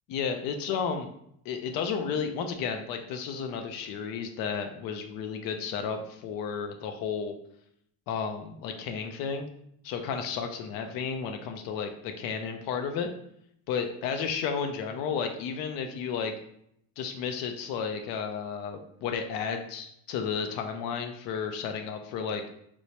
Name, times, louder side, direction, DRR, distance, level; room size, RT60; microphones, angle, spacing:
voice 1, 0.1-1.1 1.5-7.3 8.1-9.5 9.8-13.1 13.7-16.3 17.0-22.4, left 6 dB, 80° left, 5 dB, 0.5 m, -32 dB
4.5 x 2.1 x 2.8 m, 0.72 s
cardioid pair, 155°, 34 cm